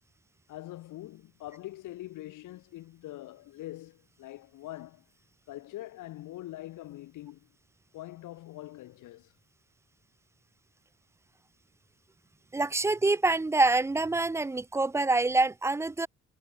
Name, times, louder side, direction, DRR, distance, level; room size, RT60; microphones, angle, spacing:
voice 1, 0.5-5.1 5.5-7.5 7.9-9.3, left 15 dB, 90° left, 3.5 m, -43 dB
voice 2, 12.5-16.1, right 3 dB, 10° right, 0.4 m, -26 dB
cardioid pair, 90°, 30 cm